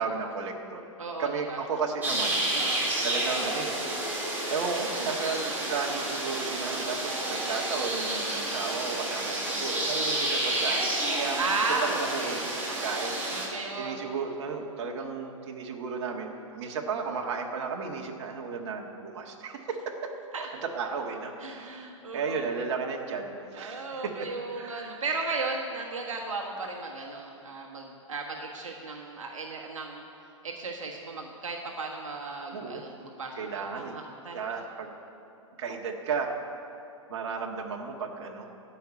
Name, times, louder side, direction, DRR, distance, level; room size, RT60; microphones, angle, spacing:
voice 1, 0.0-0.9 1.2-2.4 2.7-3.8 4.5-10.9 11.2-11.4 11.7-20.1 20.4-24.3 24.5-25.0 32.5-32.9 33.3-34.0 34.3-34.9 35.6-36.4 37.1-38.5, right 5 dB, 55° right, 1 dB, 1.6 m, -34 dB
voice 2, 1.0-1.6 2.5-2.8 11.2-12.5 13.3-14.0 20.3-20.5 21.4-22.4 23.5-30.0 30.4-34.4, right 3 dB, 75° right, 0 dB, 1.5 m, -35 dB
sound 1, 2.0-13.5, right 1 dB, 10° right, 3.5 m, -30 dB
15.0 x 5.8 x 9.0 m, 2.7 s
hypercardioid pair, 110°, 17 cm